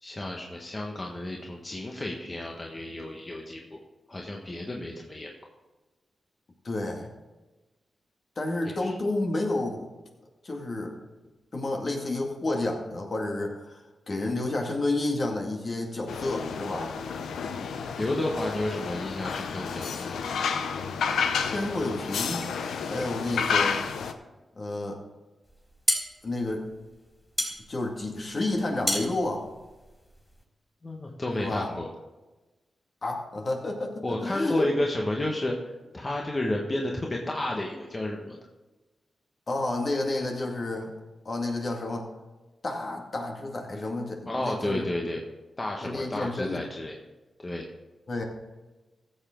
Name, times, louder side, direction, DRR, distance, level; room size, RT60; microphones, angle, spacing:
voice 1, 0.0-3.8 4.1-5.3 8.6-9.0 17.4-20.2 30.8-31.9 34.0-35.5 35.9-38.4 44.3-45.2 45.6-46.9 47.4-47.7, left 1 dB, 35° left, 0 dB, 1.5 m, -32 dB
voice 2, 6.6-7.1 8.4-9.9 10.4-10.9 11.5-13.8 14.1-16.9 21.4-22.5 22.9-23.8 24.6-25.0 26.2-26.7 27.4-29.5 31.4-31.7 33.0-34.7 39.5-40.9 41.3-42.1 42.6-45.1 45.8-46.7 48.1-48.2, left 2 dB, 55° left, 1 dB, 2.2 m, -30 dB
sound 1, 16.1-24.1, left 6 dB, 90° left, 0.6 m, -30 dB
sound 2, 25.5-30.4, left 1 dB, 15° left, 3.6 m, -31 dB
14.5 x 7.1 x 3.8 m, 1.1 s
cardioid pair, 45°, 0 cm